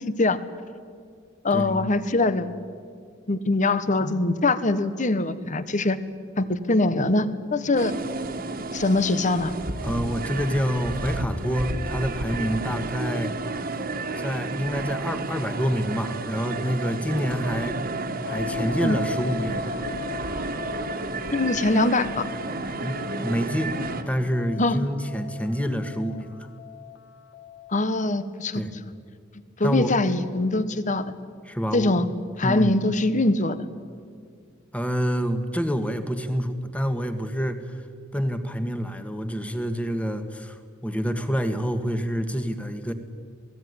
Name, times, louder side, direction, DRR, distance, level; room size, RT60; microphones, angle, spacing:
voice 1, 0.1-0.4 1.4-2.5 3.3-6.0 6.4-7.9 8.7-9.5 18.8-19.0 21.3-22.2 24.6-24.8 27.7-28.6 29.6-31.1 31.7-32.1 32.4-33.6, left 2 dB, 40° left, 13 dB, 1.2 m, -23 dB
voice 2, 1.5-1.9 9.8-13.3 14.2-17.8 18.3-19.7 22.8-23.8 24.1-26.5 28.5-28.7 29.6-30.0 31.4-32.1 32.4-32.7 34.7-37.6 38.1-42.9, equal, 5° left, 8 dB, 1.7 m, -27 dB
sound 1, 7.8-24.0, right 3 dB, 50° right, 1.9 m, -31 dB
sound 2, 18.2-27.9, left 11 dB, 60° left, 1.4 m, -40 dB
27.0 x 19.0 x 9.7 m, 2.1 s
head